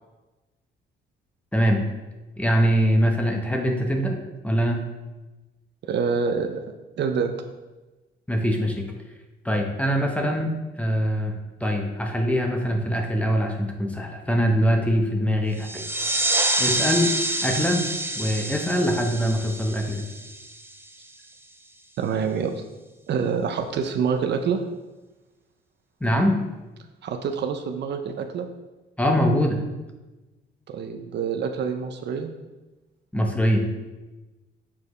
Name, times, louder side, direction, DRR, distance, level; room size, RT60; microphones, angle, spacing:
voice 1, 2.4-4.2 4.4-4.8 8.3-8.9 9.4-11.3 11.6-15.8 16.6-17.1 17.4-17.8 18.2-20.1 26.0-26.4 29.0-29.6 33.1-33.6, equal, 5° left, 2 dB, 0.9 m, -23 dB
voice 2, 5.8-6.6 7.0-7.4 22.0-22.6 23.1-24.6 27.0-28.5 30.7-32.3, right 6 dB, 60° right, 6 dB, 0.6 m, -26 dB
sound 1, 15.6-20.9, right 1 dB, 10° right, 0.5 m, -27 dB
7.1 x 4.4 x 3.2 m, 1.1 s
cardioid pair, 90°, 20 cm